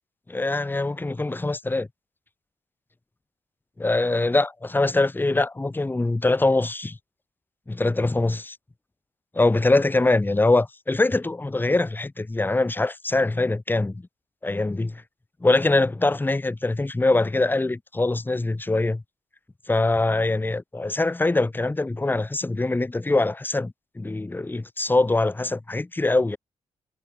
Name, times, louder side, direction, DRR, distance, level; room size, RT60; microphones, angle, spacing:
voice 1, 0.3-1.9 3.8-7.0 7.7-8.5 9.3-14.0 14.4-15.0 15.4-19.0 19.7-26.4, left 2 dB, 15° left, 0.8 m, -23 dB
supercardioid pair, 55°, 13 cm